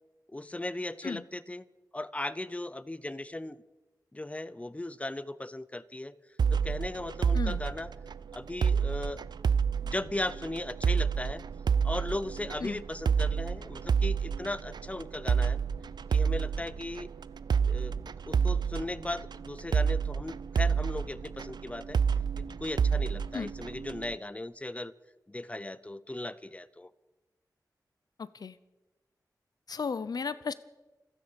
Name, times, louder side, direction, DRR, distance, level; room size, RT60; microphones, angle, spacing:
voice 1, 0.3-1.7 1.9-3.6 4.1-6.1 6.5-7.9 8.3-9.2 9.8-11.4 11.8-15.6 16.1-17.1 17.7-18.0 18.3-22.0 22.4-24.9 25.3-26.9, left 1 dB, 20° left, 16 dB, 0.7 m, -37 dB
sound 1, 6.4-24.1, right 6 dB, 85° right, 0.5 m, -29 dB
voice 2, 28.2-28.6 29.7-30.5, left 5 dB, 65° left, 15 dB, 0.6 m, -34 dB
27.5 x 9.7 x 5.2 m, 1.1 s
wide cardioid pair, 80°, 7 cm